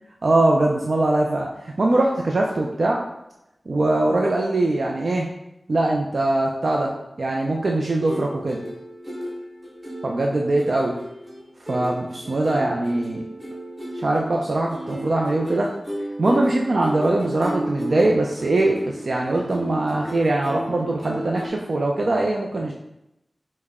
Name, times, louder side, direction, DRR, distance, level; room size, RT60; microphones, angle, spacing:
voice 1, 0.2-3.0 3.7-5.3 5.7-6.9 7.2-8.6 10.0-10.9 11.7-13.2 13.9-15.7 16.2-22.7, right 2 dB, 65° right, 0 dB, 0.4 m, -22 dB
sound 1, 7.9-21.5, equal, 20° right, 1.4 m, -33 dB
5.5 x 2.1 x 3.5 m, 0.87 s
wide cardioid pair, 85°, 0 cm